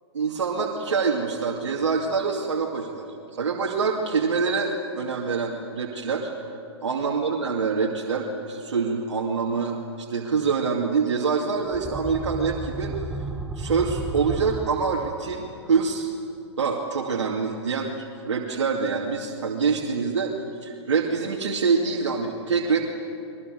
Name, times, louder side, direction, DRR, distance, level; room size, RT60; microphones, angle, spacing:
voice 1, 0.1-3.1 3.4-6.3 6.8-12.9 13.6-16.1 16.6-20.3 20.6-22.8, right 5 dB, 90° right, -1 dB, 2.6 m, -25 dB
sound 1, 11.6-15.4, right 2 dB, 5° right, 1.1 m, -33 dB
23.5 x 22.5 x 7.9 m, 2.6 s
hypercardioid pair, 135°, 15 cm